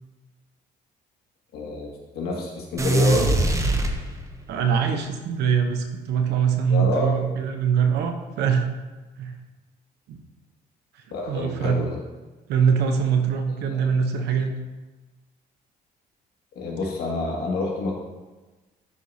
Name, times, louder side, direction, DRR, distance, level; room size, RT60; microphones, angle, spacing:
voice 1, 1.5-3.6 6.7-7.2 11.1-12.0 13.7-13.9 16.6-18.0, left 2 dB, 70° left, -2 dB, 1.9 m, -28 dB
sound 1, 2.8-4.6, right 2 dB, 20° right, 0.8 m, -22 dB
voice 2, 4.5-8.7 9.2-9.3 10.1-10.2 11.3-11.8 12.5-14.5, right 7 dB, 80° right, 5 dB, 0.9 m, -23 dB
11.0 x 4.7 x 2.8 m, 1.2 s
cardioid pair, 110°, 17 cm